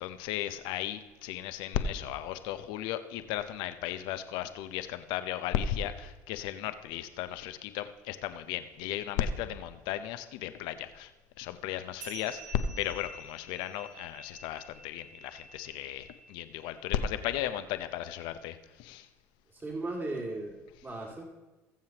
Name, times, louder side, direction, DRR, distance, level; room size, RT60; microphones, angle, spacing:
voice 1, 0.0-11.1 11.4-19.1, left 10 dB, 75° left, 10 dB, 0.8 m, -35 dB
sound 1, 12.0-16.9, right 2 dB, 75° right, 3.6 m, -49 dB
voice 2, 19.5-21.2, right 2 dB, 25° right, -2 dB, 2.4 m, -37 dB
20.5 x 7.3 x 3.0 m, 1.1 s
hypercardioid pair, 75°, 8 cm